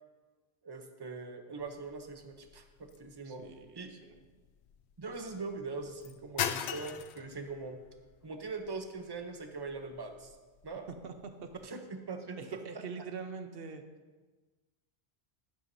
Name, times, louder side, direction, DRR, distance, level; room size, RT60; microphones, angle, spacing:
voice 1, 0.6-3.4 3.8-3.9 5.0-7.8 8.2-10.3 10.6-10.9 11.6-12.8, right 3 dB, 25° right, 5 dB, 0.7 m, -42 dB
sound 1, 1.6-11.7, left 9 dB, 85° left, 0.9 m, -43 dB
voice 2, 3.2-4.2 11.0-11.5 12.4-13.8, right 5 dB, 65° right, 7 dB, 1.0 m, -44 dB
11.5 x 11.0 x 2.7 m, 1.3 s
omnidirectional pair, 1.1 m